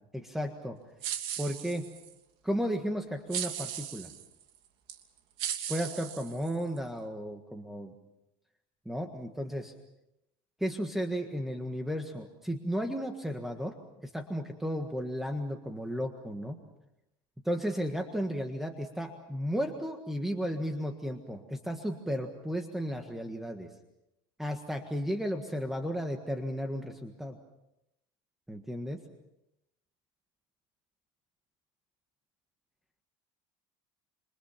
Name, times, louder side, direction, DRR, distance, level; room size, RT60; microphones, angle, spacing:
voice 1, 0.1-0.8 1.4-1.9 2.4-4.1 5.7-7.9 8.8-9.7 10.6-13.8 14.0-16.6 17.4-23.7 24.4-27.4 28.5-29.0, equal, 5° right, 4 dB, 1.6 m, -34 dB
sound 1, 1.0-2.1 3.3-4.3 4.9-5.0 5.4-6.8, right 10 dB, 50° right, 3.0 m, -37 dB
28.0 x 26.0 x 5.9 m, 0.86 s
cardioid pair, 160°, 12 cm